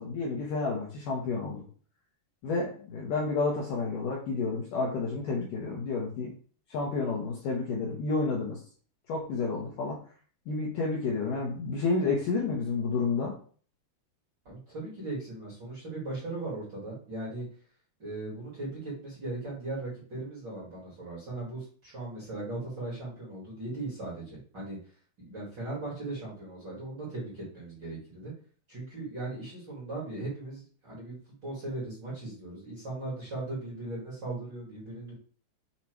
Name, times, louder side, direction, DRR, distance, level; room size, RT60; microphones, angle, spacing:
voice 1, 0.0-1.6 2.4-6.3 6.7-8.6 9.1-10.0 10.5-13.3, left 4 dB, 70° left, -2 dB, 2.1 m, -30 dB
voice 2, 14.4-17.4 18.0-24.8 25.2-28.3 28.7-31.2 31.4-35.1, right 2 dB, 35° right, -6 dB, 1.9 m, -38 dB
7.3 x 2.8 x 4.6 m, 0.43 s
omnidirectional pair, 5.0 m